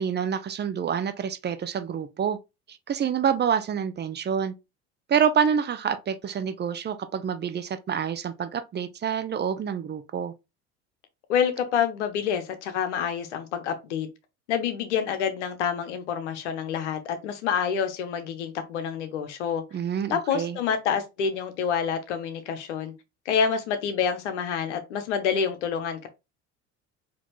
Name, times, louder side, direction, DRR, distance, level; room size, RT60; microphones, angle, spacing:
voice 1, 0.0-2.4 2.7-4.5 5.1-10.3 19.7-20.6, right 7 dB, 30° right, 0.6 m, -27 dB
voice 2, 11.3-14.1 14.5-19.6 20.1-22.9 23.3-26.1, left 7 dB, 90° left, 0.9 m, -27 dB
4.3 x 2.9 x 3.0 m
hypercardioid pair, 80°, 35 cm